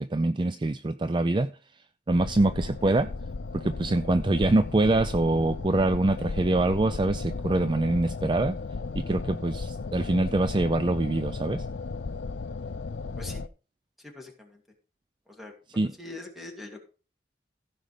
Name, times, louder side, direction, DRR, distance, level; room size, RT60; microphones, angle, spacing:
voice 1, 0.0-1.5 2.1-3.1 3.5-8.5 9.1-11.6 15.8-15.9, right 2 dB, 25° right, 0.4 m, -24 dB
sound 1, 2.1-13.5, left 4 dB, 80° left, 0.5 m, -35 dB
voice 2, 14.0-14.6 15.3-16.9, left 2 dB, ahead, 2.6 m, -43 dB
15.5 x 5.3 x 5.1 m
head